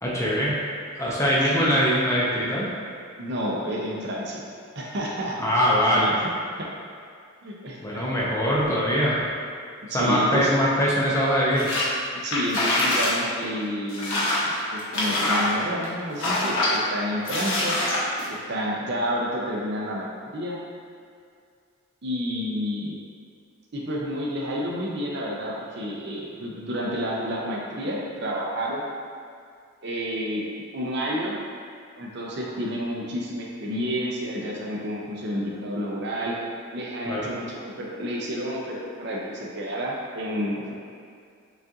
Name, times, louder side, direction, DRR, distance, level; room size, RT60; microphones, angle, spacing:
voice 1, 0.0-0.6 1.0-2.7 5.4-6.3 7.8-9.2 9.9-11.7 37.1-37.3, equal, 15° left, -6 dB, 0.7 m, -22 dB
voice 2, 1.4-1.8 3.2-4.5 4.8-5.4 5.8-6.0 6.6-6.7 7.4-8.0 9.9-10.5 12.2-17.8 18.3-20.6 22.0-23.0 23.7-28.8 29.8-30.4 30.7-31.4 32.0-36.3 36.7-40.7, equal, 55° right, -3 dB, 0.7 m, -30 dB
sound 1, 11.6-11.9 12.2-13.2 13.4-13.5 13.9-15.9 16.2-16.8 17.2-18.3, left 1 dB, 70° left, 1.0 m, -24 dB
6.0 x 2.5 x 2.8 m, 2.3 s
head